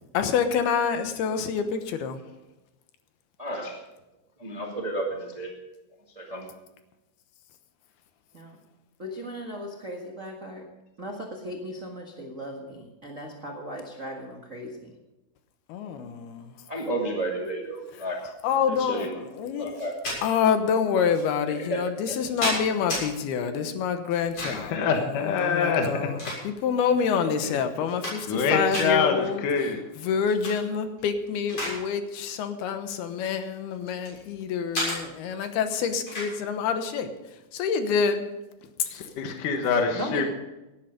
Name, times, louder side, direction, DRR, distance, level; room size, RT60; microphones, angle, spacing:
voice 1, 0.1-2.2 15.7-16.5 18.4-19.8 20.2-24.7 25.2-26.2 26.4-29.4 30.0-37.1 37.5-38.2 40.0-40.2, left 6 dB, 80° left, 8 dB, 3.0 m, -27 dB
voice 2, 3.4-3.8 4.4-5.5 6.1-6.5 16.7-18.2 18.7-19.3 19.5-20.0 21.5-22.2, right 1 dB, 20° right, 0 dB, 1.1 m, -32 dB
voice 3, 9.0-10.7 11.0-14.9 39.9-40.2, equal, 75° right, 0 dB, 0.7 m, -37 dB
sound 1, 19.7-20.2 21.1-21.2 22.0-23.0 24.1-24.7 25.7-26.8 27.3-27.4 27.8-28.4 28.7-28.9 30.2-30.6 31.0-31.8 32.1-32.3 33.1-34.2 34.7-35.0 36.1-36.3, left 1 dB, 35° left, 7.8 m, -32 dB
voice 4, 24.4-26.3 27.4-27.6 28.0-29.9 38.9-40.2, left 5 dB, 60° left, 3 dB, 2.7 m, -26 dB
18.0 x 10.5 x 5.2 m, 1.0 s
omnidirectional pair, 4.5 m